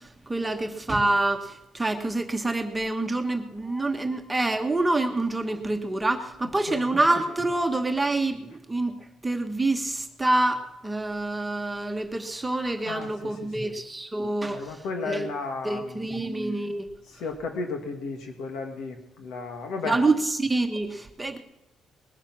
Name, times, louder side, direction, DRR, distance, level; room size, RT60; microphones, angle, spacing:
voice 1, 0.3-9.0 9.2-14.8 15.0-15.3 15.6-16.9 19.8-21.4, right 2 dB, 10° right, 5 dB, 1.2 m, -26 dB
voice 2, 12.8-13.3 13.6-13.7 14.5-16.1 17.2-20.0, left 4 dB, 90° left, 4 dB, 2.1 m, -34 dB
20.0 x 11.0 x 6.2 m, 0.91 s
cardioid pair, 140°, 0 cm